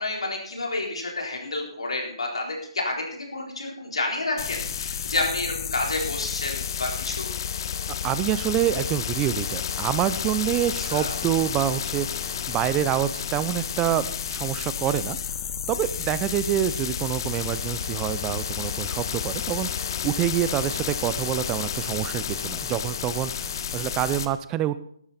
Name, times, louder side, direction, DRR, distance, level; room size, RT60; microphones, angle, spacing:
voice 1, 0.0-7.3 10.9-11.2, left 2 dB, 80° left, 0 dB, 4.0 m, -30 dB
sound 1, 4.4-24.3, left 8 dB, 45° left, 1.1 m, -31 dB
voice 2, 8.0-15.4 15.7-24.8, right 12 dB, 20° right, 14 dB, 0.5 m, -27 dB
14.5 x 12.0 x 4.2 m, 0.65 s
figure-of-eight pair, 145°, 3 cm